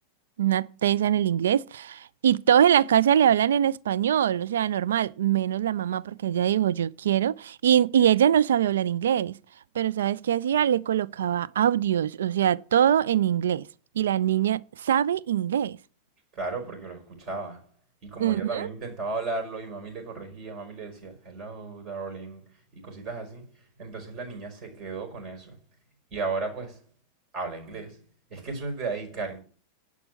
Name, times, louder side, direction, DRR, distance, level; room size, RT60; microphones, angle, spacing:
voice 1, 0.4-9.3 9.8-13.6 14.0-15.8 18.2-18.7, right 10 dB, 60° right, 0.4 m, -23 dB
voice 2, 16.3-17.7 18.0-22.4 22.7-23.5 23.8-25.6 26.1-26.8 27.3-28.0 28.3-29.4, right 3 dB, 35° right, 5.3 m, -35 dB
11.5 x 5.2 x 8.2 m
figure-of-eight pair, 90°, 0 cm